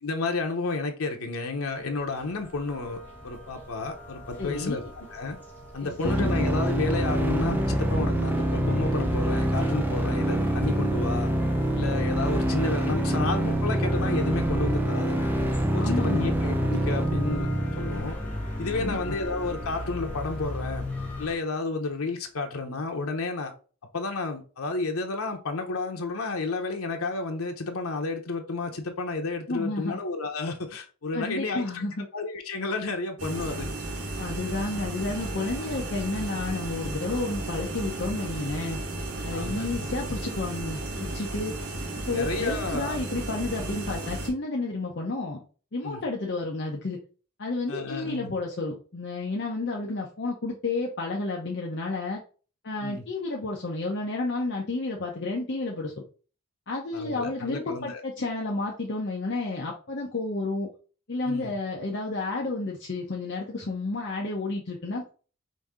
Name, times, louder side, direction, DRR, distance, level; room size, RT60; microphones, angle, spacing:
voice 1, 0.0-5.4 5.7-11.3 11.7-15.3 15.7-17.5 17.7-18.2 18.6-20.8 21.2-23.5 23.9-31.6 32.0-33.7 39.3-39.9 42.1-43.0 45.8-46.0 47.7-48.3 52.8-53.1 56.9-58.0 61.2-61.5, left 3 dB, 85° left, 0.9 m, -31 dB
sound 1, 1.7-21.4, left 1 dB, 10° left, 1.2 m, -36 dB
voice 2, 4.4-4.8 5.8-6.3 15.7-16.3 18.8-19.0 29.5-30.0 31.1-32.1 34.2-38.8 39.2-41.5 42.1-45.4 45.7-47.0 47.4-52.2 52.6-55.9 56.7-60.7 61.1-65.1, left 2 dB, 50° left, 0.7 m, -31 dB
sound 2, 6.0-18.0, right 1 dB, 10° right, 0.5 m, -26 dB
sound 3, 33.2-44.3, right 1 dB, 85° right, 1.5 m, -34 dB
5.2 x 2.7 x 3.6 m
head